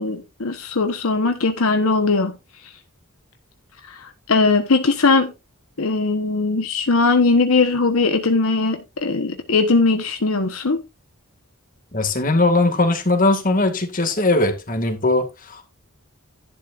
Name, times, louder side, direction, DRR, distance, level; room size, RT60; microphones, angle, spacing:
voice 1, 0.0-2.3 3.9-5.3 5.8-10.8, left 3 dB, 75° left, 1.1 m, -19 dB
voice 2, 11.9-15.6, left 2 dB, 40° left, 2.1 m, -19 dB
11.5 x 9.6 x 2.5 m
head